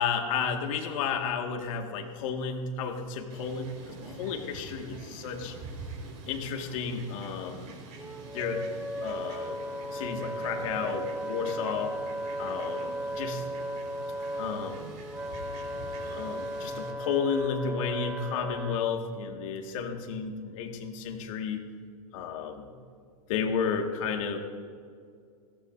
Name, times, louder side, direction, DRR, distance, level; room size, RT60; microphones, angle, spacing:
voice 1, 0.0-5.6 6.3-7.7 8.3-8.7 9.0-9.6 9.9-12.0 12.4-13.4 14.4-14.8 16.0-21.6 22.1-22.8 23.3-24.4, left 6 dB, 60° left, 4 dB, 1.9 m, -32 dB
Fowl, 3.3-16.9, right 3 dB, 55° right, 4.6 m, -46 dB
Wind instrument woodwind instrument, 8.0-18.8, equal, 5° right, 0.5 m, -36 dB
21.0 x 17.0 x 2.7 m, 2.2 s
hypercardioid pair, 130°, 19 cm